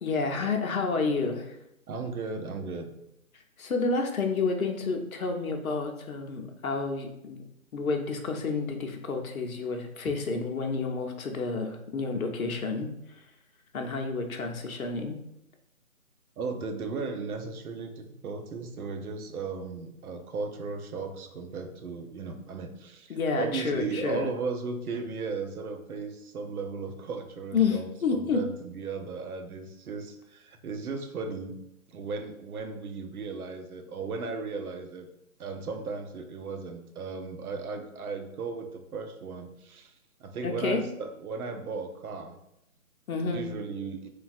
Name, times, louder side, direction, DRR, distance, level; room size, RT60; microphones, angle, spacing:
voice 1, 0.0-1.5 3.6-7.4 7.7-12.9 13.7-15.2 23.1-24.3 27.5-28.4 40.4-40.8 43.1-43.5, left 4 dB, 75° left, 3 dB, 0.6 m, -29 dB
voice 2, 1.9-2.9 16.4-31.6 31.9-35.1 35.4-39.9 40.2-42.3 43.2-44.0, right 4 dB, 85° right, 6 dB, 0.6 m, -36 dB
3.2 x 2.2 x 2.5 m, 0.80 s
hypercardioid pair, 180°, 43 cm